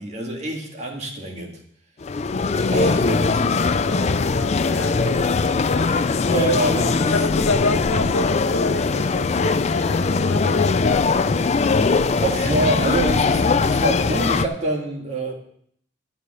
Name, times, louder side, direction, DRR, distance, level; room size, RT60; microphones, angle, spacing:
voice 1, 0.0-1.6 2.7-3.7 6.3-7.2 12.0-15.3, right 1 dB, 35° right, 1.9 m, -26 dB
sound 1, 2.0-14.5, left 4 dB, 35° left, 0.4 m, -20 dB
voice 2, 3.1-5.9 7.1-11.4, left 2 dB, 85° left, 0.9 m, -29 dB
12.0 x 4.9 x 7.6 m
head